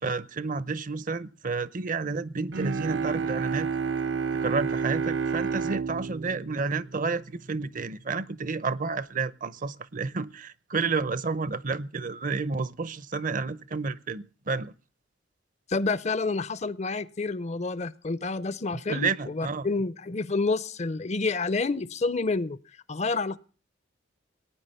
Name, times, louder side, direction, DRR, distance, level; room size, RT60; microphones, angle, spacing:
voice 1, 0.0-3.7 4.3-14.7 18.9-19.7, right 4 dB, 45° right, 0.7 m, -30 dB
Bowed string instrument, 2.5-7.7, right 5 dB, 75° right, 0.8 m, -30 dB
voice 2, 15.7-19.1 19.3-22.6 22.9-23.4, left 3 dB, 35° left, 0.6 m, -28 dB
18.5 x 9.6 x 5.5 m
head